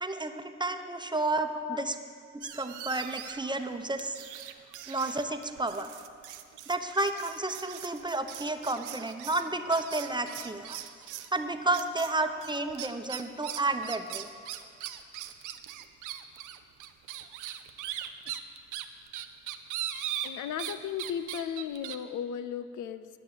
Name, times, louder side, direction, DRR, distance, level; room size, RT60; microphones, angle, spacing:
voice 1, 0.0-1.9 2.3-4.2 4.9-5.9 6.7-10.8 11.3-14.3, right 2 dB, 15° right, 7 dB, 0.9 m, -31 dB
voice 2, 1.5-1.8 18.3-18.4 20.2-23.1, left 9 dB, 80° left, 12 dB, 0.5 m, -36 dB
sound 1, 2.4-3.5 4.0-11.3 11.7-12.1 12.4-20.7 21.0-22.0, right 11 dB, 90° right, 0.6 m, -40 dB
11.0 x 6.4 x 8.1 m, 2.2 s
supercardioid pair, 55°, 30 cm